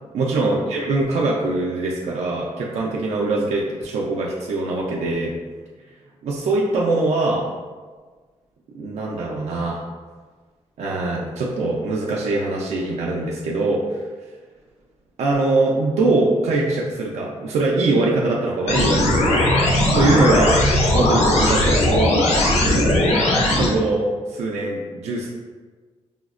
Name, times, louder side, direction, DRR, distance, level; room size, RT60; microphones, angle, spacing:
voice 1, 0.1-5.3 6.2-7.5 8.7-9.8 10.8-14.0 15.2-20.6 20.9-22.1 23.5-25.3, right 2 dB, 80° right, -3 dB, 0.4 m, -22 dB
sound 1, 18.7-23.7, left 1 dB, 80° left, 0.6 m, -18 dB
4.9 x 2.0 x 2.4 m, 1.4 s
wide cardioid pair, 175°, 11 cm